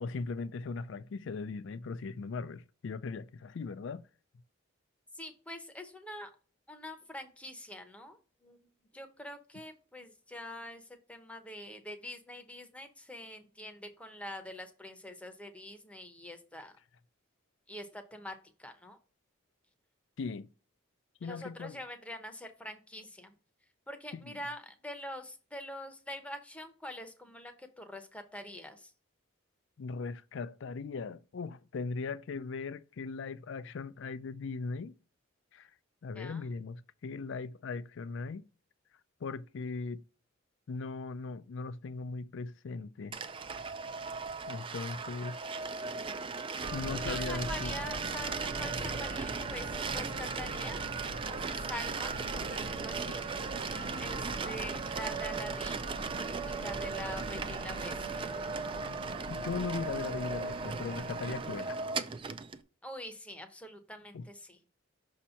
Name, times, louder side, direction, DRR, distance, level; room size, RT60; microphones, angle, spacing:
voice 1, 0.0-4.0 20.2-20.5 21.2-21.8 24.2-24.3 29.8-34.9 35.5-35.7 36.0-38.4 39.2-40.0 40.7-43.3 44.5-45.4 46.7-47.7 59.3-61.8 64.1-64.3, left 4 dB, 65° left, 0.4 m, -38 dB
voice 2, 5.1-6.3 6.7-8.7 8.9-16.8 17.7-19.0 21.2-23.3 23.9-28.9 36.1-36.6 47.0-50.8 51.2-53.3 54.0-55.8 56.5-58.3 62.8-64.6, left 1 dB, 5° left, 0.7 m, -45 dB
sound 1, 43.1-62.6, right 4 dB, 25° right, 0.3 m, -37 dB
Subway metro underground, 46.6-61.9, right 1 dB, 50° right, 0.7 m, -43 dB
6.1 x 2.9 x 5.6 m
head